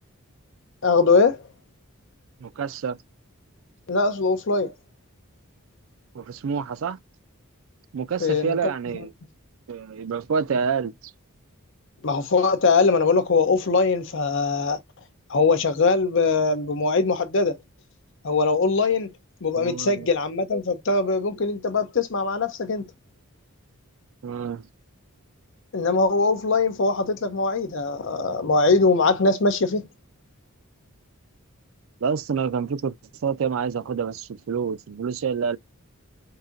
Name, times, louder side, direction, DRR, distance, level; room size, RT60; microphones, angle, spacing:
voice 1, 0.8-1.4 3.9-4.7 8.2-8.7 12.0-14.8 15.3-17.6 18.2-19.1 19.4-22.9 25.7-29.9, left 4 dB, 60° left, 0.7 m, -21 dB
voice 2, 2.4-3.0 6.1-7.0 7.9-9.1 9.7-10.9 19.6-20.1 24.2-24.7 32.0-32.9 33.2-35.6, right 6 dB, 65° right, 0.4 m, -27 dB
4.7 x 2.8 x 2.5 m
head